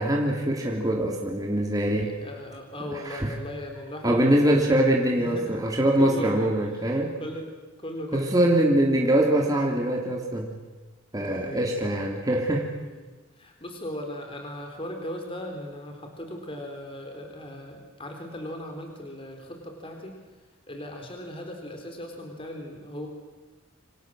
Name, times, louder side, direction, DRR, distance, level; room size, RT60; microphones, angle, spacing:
voice 1, 0.0-2.1 3.0-3.3 4.0-7.1 8.1-10.5 11.1-12.7, right 1 dB, 20° right, -1 dB, 3.0 m, -23 dB
voice 2, 2.0-4.6 5.2-5.6 6.0-7.5 7.8-8.2 11.2-12.0 12.5-20.2 20.7-23.1, left 1 dB, 25° left, 3 dB, 4.0 m, -38 dB
28.5 x 26.0 x 7.6 m, 1.2 s
head